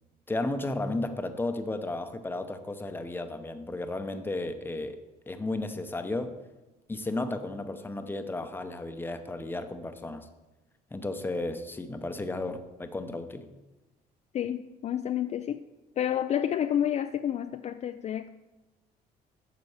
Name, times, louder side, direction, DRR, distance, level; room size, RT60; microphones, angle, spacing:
voice 1, 0.3-5.0 5.3-6.3 6.9-10.3 10.9-13.5, left 2 dB, 10° left, 8 dB, 0.8 m, -33 dB
voice 2, 14.3-15.6 16.0-18.3, left 10 dB, 40° left, 9 dB, 0.4 m, -29 dB
9.6 x 6.7 x 4.9 m, 1.1 s
cardioid pair, 110°, 17 cm